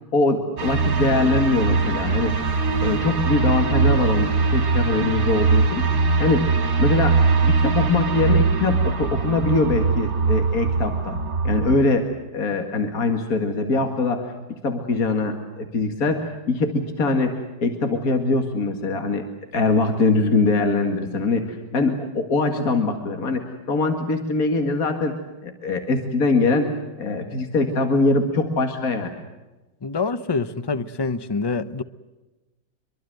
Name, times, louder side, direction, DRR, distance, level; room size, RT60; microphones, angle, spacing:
voice 1, 0.1-2.3 2.8-5.9 6.2-6.4 6.8-11.2 11.4-12.1 12.3-14.3 14.6-19.2 19.5-25.2 25.4-26.7 27.0-29.1, left 3 dB, 55° left, 5 dB, 2.5 m, -22 dB
sound 1, 0.6-11.8, right 4 dB, 55° right, 2.7 m, -21 dB
voice 2, 29.8-31.8, left 4 dB, 30° left, 13 dB, 0.5 m, -26 dB
25.0 x 23.0 x 7.9 m, 1.1 s
omnidirectional pair, 1.8 m